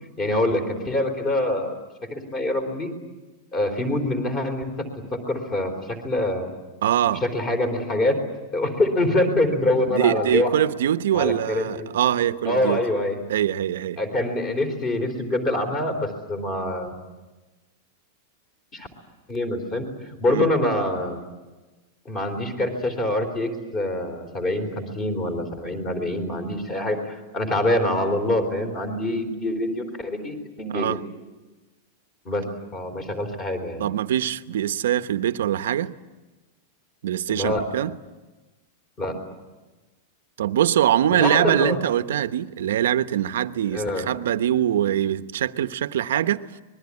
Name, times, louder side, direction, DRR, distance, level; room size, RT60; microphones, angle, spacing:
voice 1, 0.2-1.8 2.1-2.9 3.5-4.9 5.1-6.5 7.2-8.2 8.5-10.5 11.1-11.9 12.5-13.2 14.0-17.0 18.7-18.9 19.3-21.2 22.1-31.0 32.3-32.4 32.7-33.8 37.3-37.7 39.0-39.2 41.1-41.8 43.7-44.1, left 1 dB, 20° left, 3.7 m, -25 dB
voice 2, 6.8-7.2 9.9-12.8 13.3-14.0 20.3-20.5 30.7-31.0 33.8-35.9 37.0-38.0 40.4-46.4, right 11 dB, 80° right, 1.0 m, -23 dB
26.0 x 21.5 x 9.8 m
supercardioid pair, 180°, 0 cm